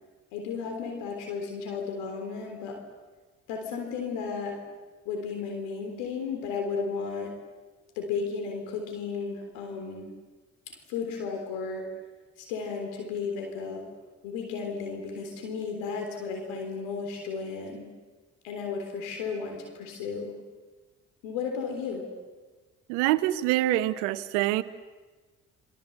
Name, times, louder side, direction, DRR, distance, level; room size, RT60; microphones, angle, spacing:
voice 1, 0.3-2.8 3.5-4.6 5.1-7.3 8.0-10.1 10.7-11.9 12.4-13.8 14.2-17.9 18.4-20.3 21.2-22.1, left 5 dB, 80° left, 3 dB, 3.7 m, -34 dB
voice 2, 22.9-24.6, right 15 dB, 80° right, 14 dB, 1.0 m, -25 dB
28.0 x 23.5 x 8.1 m, 1.3 s
hypercardioid pair, 50°, 37 cm